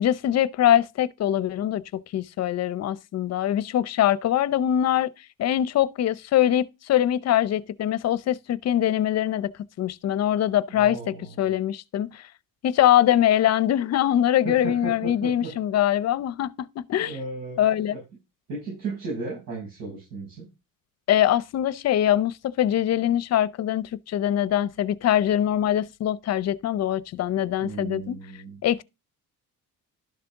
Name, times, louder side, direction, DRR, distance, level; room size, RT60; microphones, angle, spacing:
voice 1, 0.0-5.1 5.4-9.5 9.8-12.3 12.6-17.2 17.6-18.0 21.1-28.2 28.6-28.8, left 11 dB, 50° left, 0.7 m, -23 dB
voice 2, 10.7-11.5 14.4-15.5 17.0-18.0 18.5-20.5 27.6-28.6, right 3 dB, 85° right, 6.4 m, -35 dB
12.0 x 6.7 x 3.6 m
cardioid pair, 130°, 32 cm